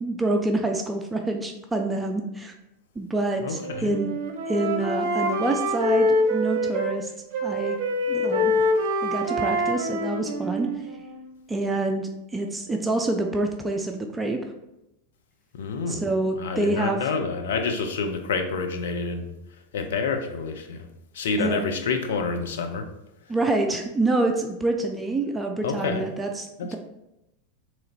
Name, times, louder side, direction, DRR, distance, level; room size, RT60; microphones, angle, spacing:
voice 1, 0.0-2.5 3.0-4.2 4.5-7.1 7.4-7.8 8.1-8.5 9.0-10.7 11.5-14.4 15.9-17.1 21.4-21.6 23.3-26.8, right 2 dB, 10° right, 3 dB, 0.4 m, -27 dB
voice 2, 3.4-3.9 15.5-16.0 16.4-19.3 19.7-20.9 21.1-22.9 25.6-26.1 26.6-26.8, left 4 dB, 65° left, 5 dB, 0.5 m, -28 dB
Wind instrument woodwind instrument, 3.5-7.0 7.3-11.3, left 1 dB, 50° right, 0.6 m, -25 dB
3.8 x 3.0 x 4.2 m, 0.90 s
figure-of-eight pair, 85°, 0 cm